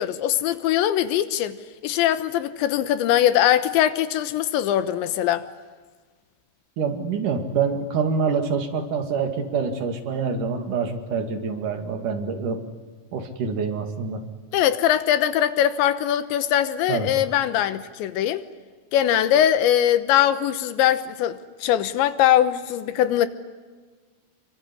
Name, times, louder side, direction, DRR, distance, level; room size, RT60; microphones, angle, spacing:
voice 1, 0.0-1.6 1.8-5.4 14.5-18.4 18.9-23.3, left 11 dB, 75° left, 3.3 m, -21 dB
voice 2, 6.8-12.6 13.1-14.2 16.9-17.1, right 5 dB, 50° right, 3.3 m, -26 dB
25.0 x 24.5 x 9.8 m
omnidirectional pair, 5.4 m